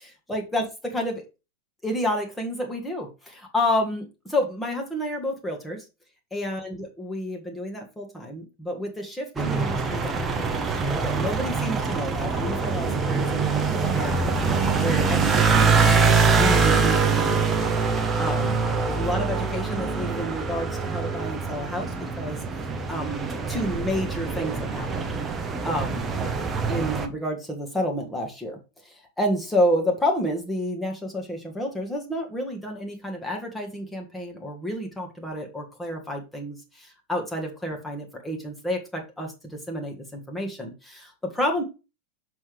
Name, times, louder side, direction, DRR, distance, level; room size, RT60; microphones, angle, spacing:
voice 1, 0.3-1.2 1.8-5.8 6.3-15.8 16.1-17.4 18.2-18.6 18.9-25.1 25.6-26.1 26.7-41.6, equal, 5° left, 1 dB, 1.6 m, -30 dB
sound 1, 9.4-27.1, right 4 dB, 20° right, 1.0 m, -24 dB
6.1 x 5.6 x 3.3 m, 0.28 s
figure-of-eight pair, 90°, 0 cm